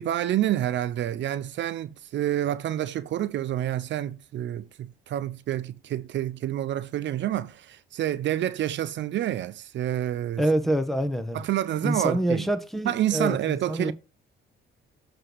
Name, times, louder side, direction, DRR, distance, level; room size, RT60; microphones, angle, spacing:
voice 1, 0.0-10.4 11.3-12.5 12.8-13.9, right 12 dB, 65° right, 0.6 m, -28 dB
voice 2, 10.4-11.4 11.8-13.9, right 1 dB, ahead, 1.1 m, -26 dB
7.7 x 3.4 x 6.2 m
cardioid pair, 90°, 20 cm